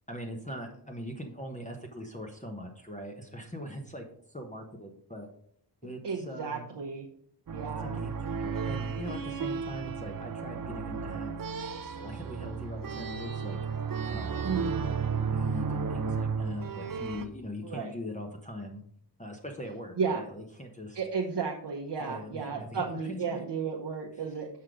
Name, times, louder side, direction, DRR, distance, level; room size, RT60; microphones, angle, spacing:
voice 1, 0.1-5.3 5.8-6.7 7.8-13.6 14.1-14.4 14.8-18.8 19.2-21.0 22.0-23.4, equal, 15° left, 2 dB, 1.1 m, -41 dB
voice 2, 6.0-7.1 7.5-8.0 14.4-14.8 17.6-17.9 20.0-20.2 20.9-24.5, right 5 dB, 75° right, -1 dB, 1.0 m, -33 dB
sound 1, 7.5-17.3, right 6 dB, 50° right, 0.7 m, -33 dB
6.4 x 5.8 x 5.0 m, 0.63 s
wide cardioid pair, 75°, 42 cm